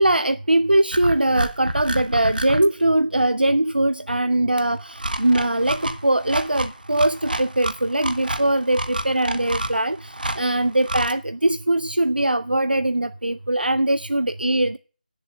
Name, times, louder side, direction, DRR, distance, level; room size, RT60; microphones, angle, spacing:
voice 1, 0.0-14.8, right 1 dB, 90° right, 0.5 m, -21 dB
sound 1, 0.9-2.7 4.6-11.1, right 1 dB, 70° right, 1.2 m, -29 dB
9.0 x 7.2 x 8.8 m
figure-of-eight pair, 160°, 5 cm